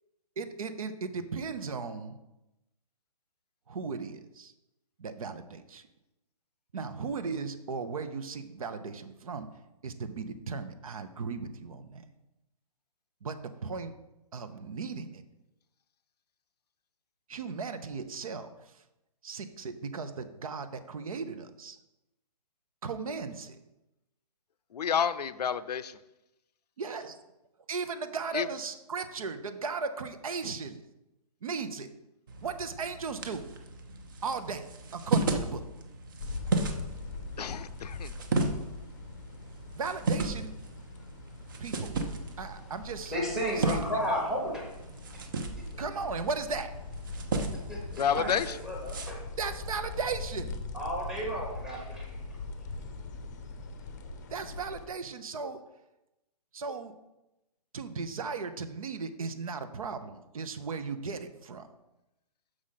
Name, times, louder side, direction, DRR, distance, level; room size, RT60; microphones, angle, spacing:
voice 1, 0.4-2.1 3.7-4.5 5.0-5.8 6.7-9.5 9.8-12.1 13.2-13.9 14.3-15.2 17.3-18.5 19.2-21.8 22.8-23.6 26.8-27.2 27.7-30.8 31.4-31.9 32.4-33.5 34.2-35.6 39.7-40.5 41.6-41.9 42.4-43.1 43.6-43.8 45.8-46.7 49.4-50.6 54.3-55.6 56.5-56.9 57.7-61.7, right 5 dB, 60° right, 10 dB, 0.8 m, -36 dB
voice 2, 24.7-25.8 28.3-28.5 37.4-38.1 38.4-38.5 48.0-48.6, left 8 dB, 85° left, 13 dB, 0.5 m, -29 dB
sound 1, 32.3-49.1, right 3 dB, 30° right, 0.7 m, -35 dB
sound 2, 36.2-54.9, left 3 dB, 30° left, 0.6 m, -42 dB
voice 3, 43.1-44.7 45.7-45.8 47.7-48.0 48.4-49.2 50.7-52.1, equal, ahead, -2 dB, 1.0 m, -33 dB
6.4 x 5.0 x 5.7 m, 0.95 s
hypercardioid pair, 170°, 20 cm